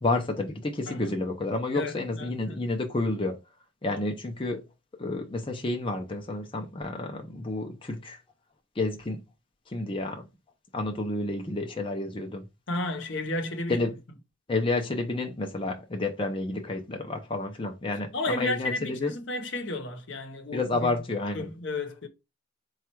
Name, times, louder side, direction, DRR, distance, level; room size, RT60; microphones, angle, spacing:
voice 1, 0.0-3.4 3.8-4.6 5.0-8.2 8.8-9.2 9.7-10.2 10.7-12.5 13.7-13.9 14.5-19.1 20.5-21.5, left 2 dB, 25° left, 0.6 m, -30 dB
voice 2, 1.7-2.6 3.9-4.0 12.7-13.8 18.1-20.9 21.3-22.1, left 2 dB, 65° left, 0.9 m, -33 dB
4.3 x 2.4 x 4.5 m
head